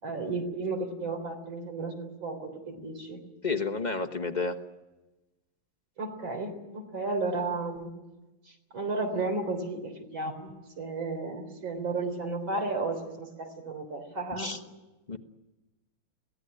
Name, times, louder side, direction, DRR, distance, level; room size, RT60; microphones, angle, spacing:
voice 1, 0.0-3.2 6.0-7.9 8.7-14.6, right 3 dB, 80° right, 5 dB, 4.5 m, -33 dB
voice 2, 3.4-4.6 14.4-14.6 15.1-15.2, left 4 dB, 30° left, 5 dB, 1.1 m, -30 dB
23.0 x 17.5 x 9.8 m, 1.1 s
omnidirectional pair, 2.1 m